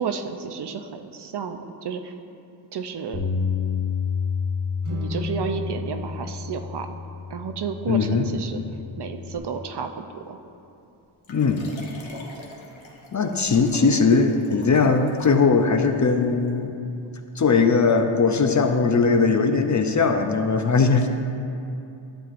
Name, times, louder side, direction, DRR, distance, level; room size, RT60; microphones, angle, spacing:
voice 1, 0.0-2.1 2.7-3.3 4.9-6.9 7.3-8.6 9.0-10.4, right 6 dB, 55° right, 7 dB, 0.5 m, -31 dB
Bass guitar, 3.1-9.4, left 6 dB, 20° left, 1.2 m, -30 dB
sound 1, 4.8-8.1, left 1 dB, 75° right, 1.6 m, -39 dB
voice 2, 7.9-8.3 11.3-11.6 13.1-16.8 17.4-21.1, left 4 dB, 40° left, 6 dB, 0.5 m, -20 dB
Liquid, 11.2-15.8 16.5-16.6, left 2 dB, 70° left, 1.1 m, -44 dB
11.5 x 7.4 x 2.5 m, 2.7 s
wide cardioid pair, 90°, 48 cm